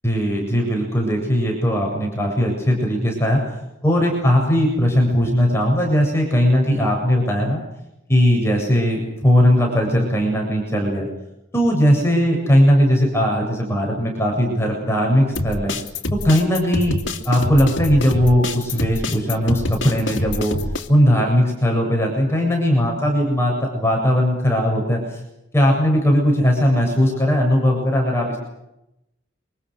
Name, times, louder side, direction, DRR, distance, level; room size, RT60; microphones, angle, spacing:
voice 1, 0.0-3.4 3.8-7.6 8.1-11.1 11.5-15.7 16.2-17.0 17.2-20.6 20.9-25.2 25.5-28.4, equal, 15° left, 0 dB, 7.7 m, -18 dB
sound 1, 15.4-20.9, left 2 dB, 70° left, 2.8 m, -26 dB
28.0 x 26.0 x 6.6 m, 0.86 s
head